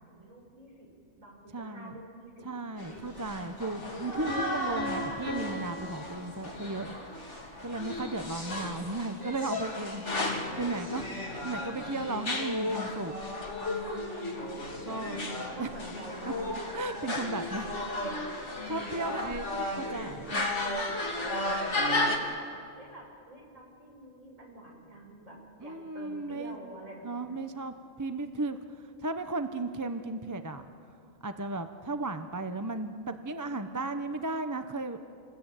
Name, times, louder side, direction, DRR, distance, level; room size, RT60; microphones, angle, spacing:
voice 1, 0.1-0.9 1.2-2.5 2.8-3.4 14.8-16.5 17.1-17.4 19.0-20.0 20.4-21.6 21.9-22.2 22.8-27.4, right 1 dB, 65° right, -1 dB, 6.6 m, -47 dB
voice 2, 1.5-1.9 2.4-6.9 7.6-10.0 10.3-11.1 11.4-13.1 14.8-15.2 15.6-15.7 16.2-16.3 16.7-17.7 18.2-19.5 19.8-20.5 25.6-26.6 27.0-30.7 31.2-35.0, right 2 dB, 15° right, 8 dB, 0.8 m, -35 dB
sound 1, 2.8-22.2, left 2 dB, 55° left, 3.1 m, -34 dB
Piano, 4.3-7.0, equal, 45° right, 3.1 m, -39 dB
28.5 x 20.5 x 9.1 m, 2.5 s
omnidirectional pair, 1.5 m